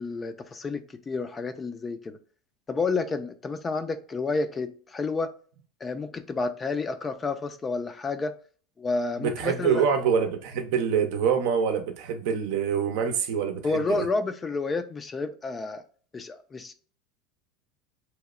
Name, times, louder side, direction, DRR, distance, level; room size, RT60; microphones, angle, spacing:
voice 1, 0.0-2.2 2.7-5.3 5.8-8.3 8.8-9.9 13.6-15.8 16.1-16.7, left 3 dB, 25° left, 0.4 m, -30 dB
voice 2, 9.2-14.1, right 7 dB, 70° right, 0.5 m, -25 dB
2.8 x 2.0 x 2.3 m
supercardioid pair, 100°, 0 cm